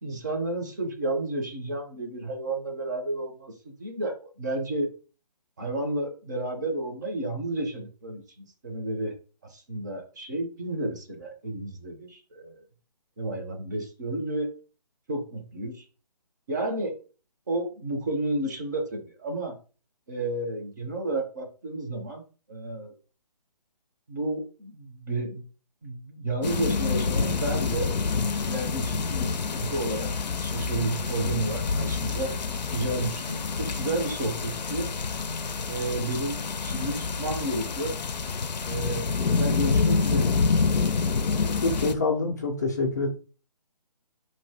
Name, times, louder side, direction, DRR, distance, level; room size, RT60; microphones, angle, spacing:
voice 1, 0.0-4.9 5.6-9.2 9.4-12.6 13.2-14.5 15.1-15.8 16.5-17.0 17.5-19.6 20.1-22.2 22.5-22.9 24.1-25.4 25.8-27.9 28.4-30.1 30.4-32.3 32.7-34.9 35.7-37.9 38.7-40.5, right 2 dB, 25° right, 0.6 m, -31 dB
sound 1, 26.4-42.0, left 4 dB, 90° left, 0.4 m, -27 dB
voice 2, 41.3-43.1, left 3 dB, 25° left, 0.4 m, -27 dB
2.7 x 2.6 x 3.3 m
figure-of-eight pair, 155°, 21 cm